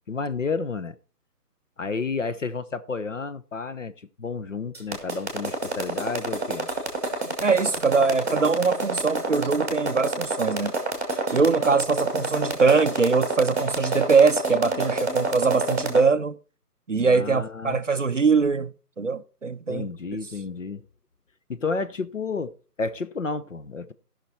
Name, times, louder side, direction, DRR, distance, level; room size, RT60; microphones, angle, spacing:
voice 1, 0.1-1.0 1.8-6.7 16.9-17.8 19.7-20.8 21.5-22.5 22.8-23.9, left 4 dB, 50° left, 0.8 m, -31 dB
sound 1, 4.7-16.0, right 3 dB, 10° right, 1.1 m, -27 dB
voice 2, 7.4-10.7 11.3-16.3 16.9-19.9, right 4 dB, 50° right, 0.5 m, -22 dB
15.5 x 5.9 x 4.4 m
hypercardioid pair, 175°, 48 cm